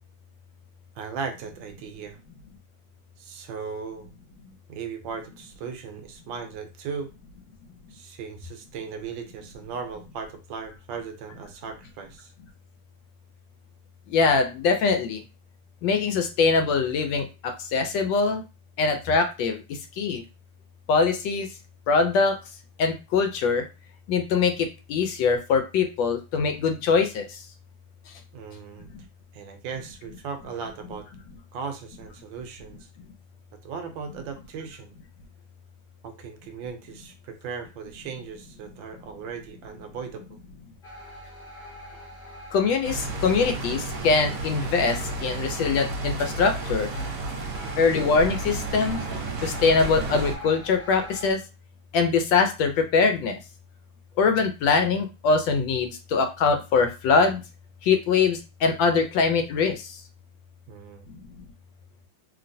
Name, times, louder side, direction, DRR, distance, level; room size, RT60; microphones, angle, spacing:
voice 1, 0.9-2.2 3.2-4.1 4.7-7.1 7.9-12.3 28.3-28.9 29.3-31.1 31.5-32.9 33.6-34.9 36.0-40.4 47.6-47.9 60.7-61.1, right 6 dB, 75° right, 6 dB, 1.2 m, -37 dB
voice 2, 14.1-15.2 15.8-18.4 18.8-20.2 20.9-21.5 21.9-22.4 22.8-23.7 24.1-27.4 42.5-46.9 47.8-49.0 49.4-51.4 51.9-53.4 54.2-57.4 57.8-60.0, left 4 dB, 75° left, 6 dB, 1.2 m, -23 dB
sound 1, 40.8-51.3, equal, 40° left, 0.7 m, -44 dB
sound 2, 42.8-50.3, right 2 dB, 60° right, 1.1 m, -32 dB
3.0 x 2.8 x 2.6 m, 0.29 s
omnidirectional pair, 2.2 m